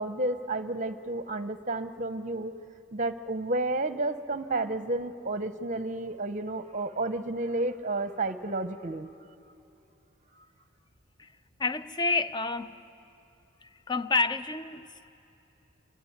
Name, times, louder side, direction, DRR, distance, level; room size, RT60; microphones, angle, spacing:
voice 1, 0.0-2.5 2.9-9.1 10.4-10.5, right 2 dB, 35° right, 0.8 m, -31 dB
voice 2, 11.6-12.8 13.6-15.1, left 3 dB, 20° left, 0.6 m, -29 dB
26.5 x 23.5 x 9.5 m
head